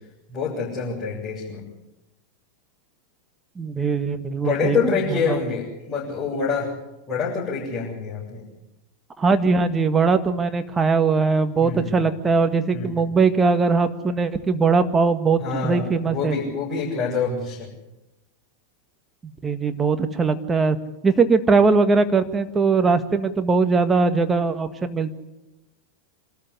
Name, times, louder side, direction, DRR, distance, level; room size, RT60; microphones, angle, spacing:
voice 1, 0.3-1.6 4.4-6.7 7.1-8.4 11.6-12.0 12.7-13.1 15.4-17.7, left 5 dB, 20° left, -6 dB, 7.6 m, -26 dB
voice 2, 3.6-5.4 9.2-16.4 19.2-20.8 21.0-25.1, right 4 dB, 15° right, 8 dB, 1.8 m, -20 dB
26.5 x 13.5 x 10.0 m, 0.95 s
figure-of-eight pair, 90°, 0 cm